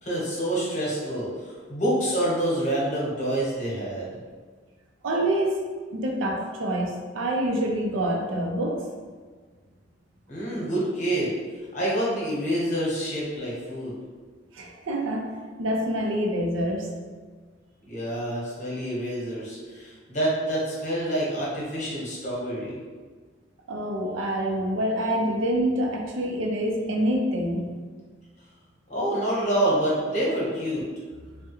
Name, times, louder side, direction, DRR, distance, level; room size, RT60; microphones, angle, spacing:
voice 1, 0.0-4.1 10.3-11.3 11.7-14.0 17.9-22.8 28.9-30.8, right 1 dB, 40° left, -6 dB, 0.9 m, -27 dB
voice 2, 5.0-8.8 14.5-15.3 15.6-16.9 23.7-27.7, right 1 dB, 80° right, 0 dB, 0.5 m, -26 dB
3.4 x 2.1 x 2.9 m, 1.5 s
head